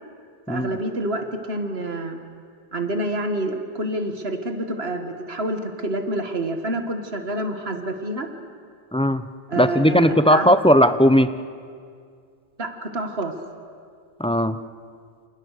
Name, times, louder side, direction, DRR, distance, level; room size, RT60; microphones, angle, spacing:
voice 1, 0.5-2.2 2.7-8.3 9.5-10.5 12.6-13.3, right 1 dB, 80° right, 6 dB, 2.0 m, -28 dB
voice 2, 8.9-9.2 9.6-11.3 14.2-14.6, equal, 5° left, 11 dB, 0.7 m, -17 dB
28.5 x 28.0 x 6.7 m, 2.2 s
omnidirectional pair, 1.0 m